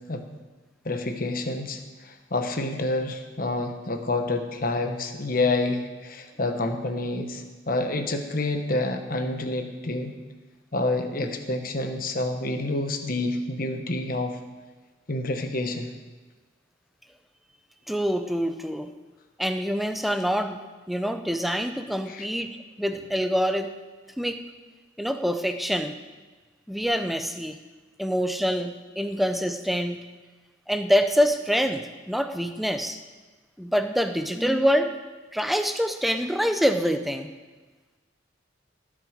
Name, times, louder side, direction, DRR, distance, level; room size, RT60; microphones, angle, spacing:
voice 1, 0.8-10.1 10.7-14.4 15.1-15.9 22.1-22.3, left 2 dB, 45° left, 6 dB, 1.2 m, -28 dB
voice 2, 17.9-18.9 19.4-20.6 20.9-23.7 24.2-24.4 25.0-26.0 26.7-27.6 28.0-30.0 30.7-33.0 33.6-34.9 35.3-37.3, equal, ahead, 7 dB, 0.6 m, -25 dB
18.5 x 7.7 x 5.1 m, 1.3 s
head